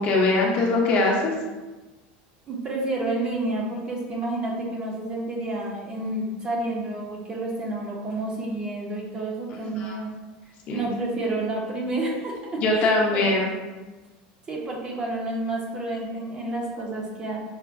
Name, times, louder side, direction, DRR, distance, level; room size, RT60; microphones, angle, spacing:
voice 1, 0.0-1.3 9.7-10.0 10.7-10.9 12.6-13.5, left 2 dB, 35° left, -1 dB, 0.6 m, -22 dB
voice 2, 2.5-10.2 10.7-13.3 14.5-17.4, right 2 dB, 20° right, -2 dB, 0.5 m, -30 dB
5.6 x 2.0 x 2.4 m, 1.2 s
cardioid pair, 170°, 4 cm